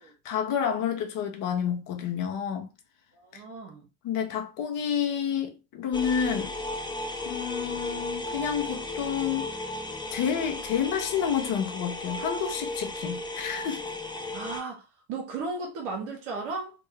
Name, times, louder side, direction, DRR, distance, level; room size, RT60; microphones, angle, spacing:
voice 1, 0.2-2.7 3.3-3.4 4.0-6.5 7.2-9.6 10.1-13.8, left 8 dB, 60° left, 1.0 m, -29 dB
voice 2, 3.1-3.9 14.3-16.7, right 3 dB, 80° right, 1.2 m, -35 dB
sound 1, 5.9-14.6, left 2 dB, 10° left, 0.8 m, -35 dB
3.5 x 2.2 x 3.4 m
hypercardioid pair, 75°, 36 cm